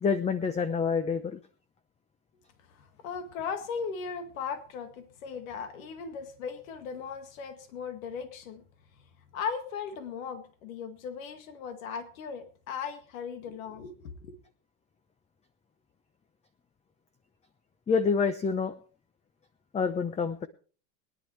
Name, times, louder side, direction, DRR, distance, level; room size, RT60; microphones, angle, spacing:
voice 1, 0.0-1.4 17.9-18.7 19.7-20.5, left 5 dB, 15° left, 13 dB, 0.7 m, -27 dB
voice 2, 2.7-8.6 9.3-14.4, left 6 dB, 85° left, 8 dB, 2.0 m, -38 dB
22.0 x 10.5 x 3.3 m, 0.41 s
supercardioid pair, 115°, 40 cm